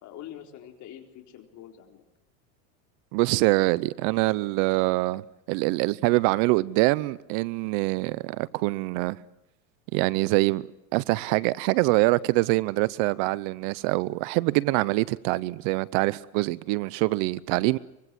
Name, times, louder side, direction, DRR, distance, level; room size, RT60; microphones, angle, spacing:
voice 1, 0.0-2.0, left 11 dB, 40° left, 4.3 m, -44 dB
voice 2, 3.1-5.2 5.5-9.2 9.9-10.6 10.9-17.8, right 21 dB, 55° right, 0.8 m, -24 dB
24.5 x 23.0 x 7.7 m
supercardioid pair, 145°, 44 cm